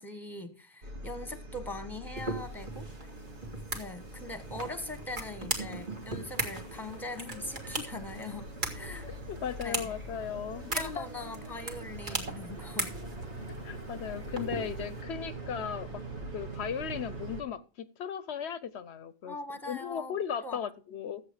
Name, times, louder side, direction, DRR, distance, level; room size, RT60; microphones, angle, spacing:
voice 1, 0.0-3.1 3.7-9.1 9.6-9.9 10.7-12.9 19.3-20.6, left 2 dB, ahead, 9 dB, 1.5 m, -41 dB
sound 1, 0.8-17.4, right 2 dB, 90° right, 2.0 m, -43 dB
sound 2, 2.2-15.0, right 2 dB, 45° right, 2.3 m, -39 dB
voice 2, 9.3-11.0 13.6-16.0 16.3-19.4 19.7-21.2, left 8 dB, 75° left, 15 dB, 1.0 m, -36 dB
13.5 x 8.2 x 4.8 m, 0.35 s
omnidirectional pair, 1.1 m